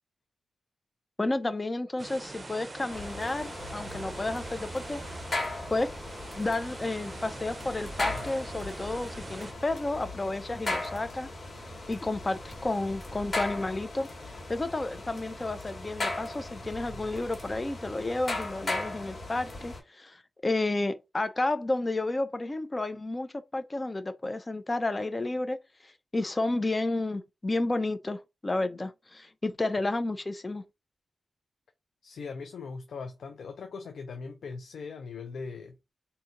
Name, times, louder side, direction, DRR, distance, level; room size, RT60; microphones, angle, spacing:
voice 1, 1.2-5.0 5.7-5.9 6.3-11.3 11.9-14.1 14.5-25.6 25.8-30.6, left 2 dB, 35° left, 0.6 m, -31 dB
sound 1, 2.0-9.5, right 2 dB, 45° right, 0.6 m, -44 dB
sound 2, 2.9-19.8, left 2 dB, 55° left, 1.8 m, -37 dB
voice 2, 32.0-35.9, left 4 dB, 90° left, 0.4 m, -40 dB
4.3 x 2.8 x 2.5 m
cardioid pair, 55°, 0 cm